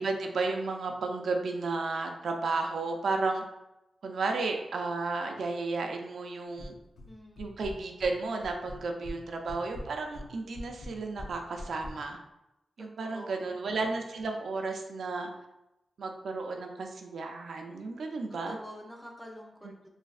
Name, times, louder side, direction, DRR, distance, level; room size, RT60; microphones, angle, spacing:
voice 1, 0.0-3.4 4.0-6.7 7.4-12.2 12.8-15.3 16.0-18.6 19.6-19.7, right 3 dB, 70° right, 3 dB, 0.4 m, -33 dB
sound 1, 6.6-7.1 7.4-8.1 8.4-9.2 9.5-12.0, left 1 dB, 75° left, 0.5 m, -42 dB
voice 2, 7.1-7.4 12.8-13.6 18.5-19.9, equal, 5° left, 0 dB, 0.5 m, -47 dB
3.2 x 2.6 x 2.4 m, 0.92 s
wide cardioid pair, 165°, 0 cm